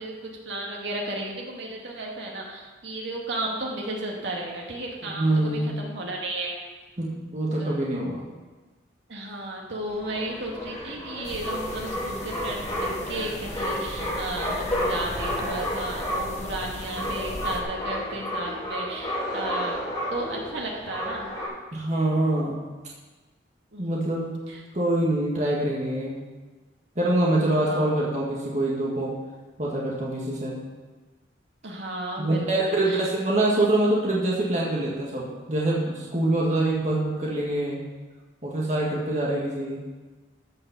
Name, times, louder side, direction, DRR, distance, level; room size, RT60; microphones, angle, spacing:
voice 1, 0.0-6.6 7.6-7.8 9.1-19.8 20.1-21.3 23.7-24.6 27.5-27.8 31.6-33.0, right 2 dB, 75° right, -2 dB, 2.3 m, -34 dB
voice 2, 5.0-5.7 7.0-8.2 21.7-22.6 23.8-24.3 24.7-26.2 26.9-29.1 29.6-30.6 32.2-37.8 38.4-39.8, right 1 dB, 40° right, -4 dB, 1.8 m, -25 dB
sound 1, 9.9-21.5, equal, 20° left, 3.0 m, -31 dB
sound 2, 11.2-17.6, left 1 dB, 35° left, 1.1 m, -38 dB
13.5 x 5.4 x 6.9 m, 1.3 s
head